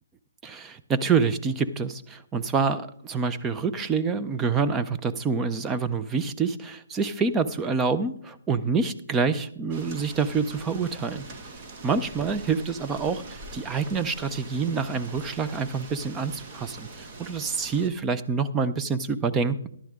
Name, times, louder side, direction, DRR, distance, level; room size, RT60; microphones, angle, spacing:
voice 1, 0.4-11.2 11.8-16.9 17.2-19.7, right 5 dB, 10° right, 10 dB, 0.6 m, -27 dB
sound 1, 9.7-17.9, right 2 dB, 30° right, 1.8 m, -43 dB
14.5 x 11.5 x 3.7 m, 0.71 s
hypercardioid pair, 150°, 0 cm